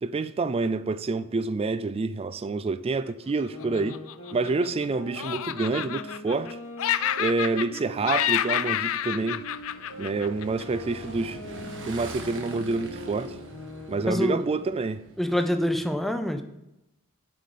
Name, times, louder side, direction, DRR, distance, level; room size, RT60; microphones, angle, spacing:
voice 1, 0.0-4.0 4.3-6.6 7.2-9.5 10.0-11.4 11.9-13.4 13.9-15.0, right 3 dB, 25° right, 0.4 m, -28 dB
sound 1, 3.3-8.7 9.2-14.1, left 1 dB, 80° left, 2.3 m, -42 dB
Laughter, 3.6-4.8 5.2-6.5 6.8-7.8 8.0-10.6, left 11 dB, 65° left, 0.4 m, -29 dB
Motorcycle / Engine, 8.8-15.9, right 2 dB, 60° right, 1.3 m, -43 dB
voice 2, 14.1-14.5 15.2-16.4, equal, ahead, 0.7 m, -26 dB
7.7 x 5.5 x 6.5 m
head